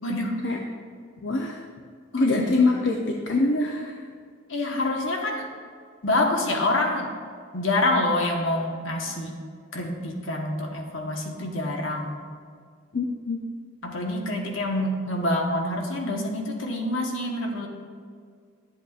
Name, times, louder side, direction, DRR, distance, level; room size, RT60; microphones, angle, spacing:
voice 1, 0.0-0.4 2.1-2.6 4.5-5.5 6.0-7.1 7.5-9.3 9.7-12.2 13.8-17.7, left 1 dB, 85° left, 1 dB, 1.3 m, -26 dB
voice 2, 1.2-1.6 2.1-3.0 3.3-3.9 12.9-13.5, left 3 dB, 70° left, 0 dB, 0.7 m, -23 dB
12.0 x 7.8 x 2.5 m, 2.1 s
head